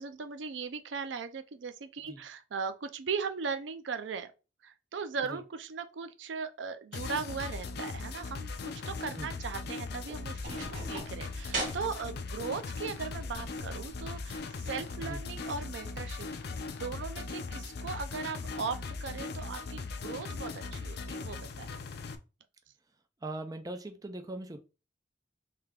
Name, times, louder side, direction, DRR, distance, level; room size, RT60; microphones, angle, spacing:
voice 1, 0.0-4.3 4.6-16.3 16.8-21.7, right 5 dB, 85° right, 0.5 m, -38 dB
sound 1, 6.9-22.2, left 4 dB, 60° left, 0.4 m, -39 dB
sound 2, 9.9-16.8, right 2 dB, 45° right, 1.4 m, -44 dB
voice 2, 23.2-24.6, right 2 dB, 20° right, 0.4 m, -40 dB
3.3 x 2.8 x 3.6 m
head